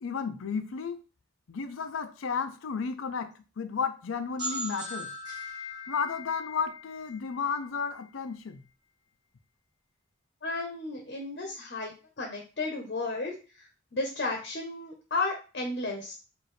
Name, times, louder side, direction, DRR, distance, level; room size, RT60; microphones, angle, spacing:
voice 1, 0.0-1.0 1.5-5.1 5.9-8.6, left 5 dB, 80° left, 0.5 m, -33 dB
sound 1, 4.4-8.0, equal, 20° right, 1.3 m, -39 dB
voice 2, 10.4-13.4 13.9-16.1, left 3 dB, 50° left, 0.8 m, -33 dB
4.8 x 2.6 x 3.1 m
head